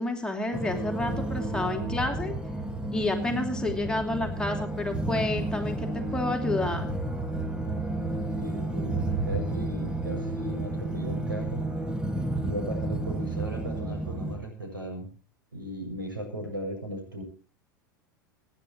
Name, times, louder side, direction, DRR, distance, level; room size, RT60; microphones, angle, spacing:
voice 1, 0.0-2.3 2.9-6.9, left 2 dB, 5° left, 2 dB, 2.9 m, -30 dB
sound 1, 0.5-14.4, right 2 dB, 10° right, 1.8 m, -31 dB
voice 2, 7.5-11.7 12.4-15.1 15.5-17.2, right 1 dB, 85° right, 2 dB, 7.1 m, -37 dB
25.5 x 10.0 x 3.1 m, 0.39 s
figure-of-eight pair, 85°, 11 cm